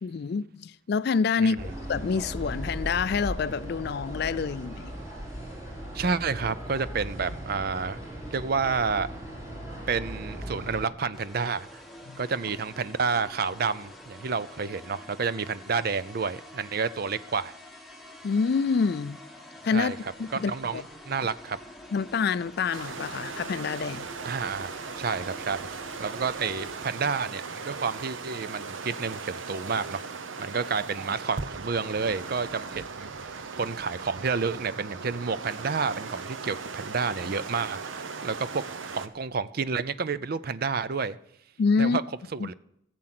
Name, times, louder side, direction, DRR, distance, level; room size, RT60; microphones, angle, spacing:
voice 1, 0.0-1.6 1.9-4.9 12.1-12.2 18.2-19.2 19.6-19.9 20.2-20.8 21.9-24.1 41.6-42.0 42.4-42.5, left 5 dB, 55° left, 0.3 m, -27 dB
sound 1, 1.6-10.9, equal, 15° right, 3.1 m, -38 dB
voice 2, 5.9-8.0 8.3-9.1 9.9-11.8 12.2-17.5 19.7-20.0 20.3-21.6 24.2-24.7 25.0-25.7 26.0-38.6 38.9-41.2 41.8-42.0 42.3-42.5, right 5 dB, 50° right, 0.5 m, -30 dB
sound 2, 11.1-26.8, left 1 dB, ahead, 1.5 m, -47 dB
sound 3, 22.7-39.1, right 4 dB, 75° right, 0.8 m, -38 dB
15.0 x 7.6 x 6.0 m
head